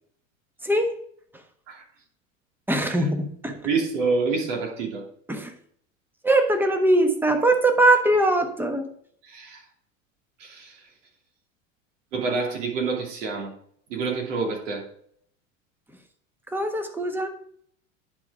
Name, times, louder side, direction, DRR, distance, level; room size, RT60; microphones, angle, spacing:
voice 1, 0.6-1.0 2.7-3.6 5.3-5.5 6.2-8.9 16.5-17.3, right 1 dB, 5° right, 1.3 m, -21 dB
voice 2, 3.6-5.0 9.2-9.6 10.4-10.8 12.1-13.5 13.9-14.8, right 4 dB, 65° right, 2.9 m, -27 dB
10.5 x 4.9 x 4.8 m
hypercardioid pair, 85°, 39 cm